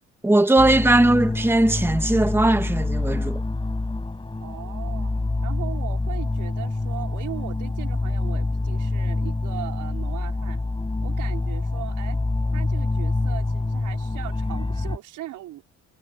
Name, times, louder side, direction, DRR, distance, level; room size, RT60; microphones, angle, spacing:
voice 1, 0.2-3.4, right 1 dB, 10° right, 1.5 m, -19 dB
sound 1, 0.6-15.0, left 2 dB, 15° left, 5.0 m, -26 dB
voice 2, 4.4-5.1 5.4-10.6 11.0-12.2 12.5-15.6, right 14 dB, 85° right, 4.5 m, -38 dB
cardioid pair, 90°, 30 cm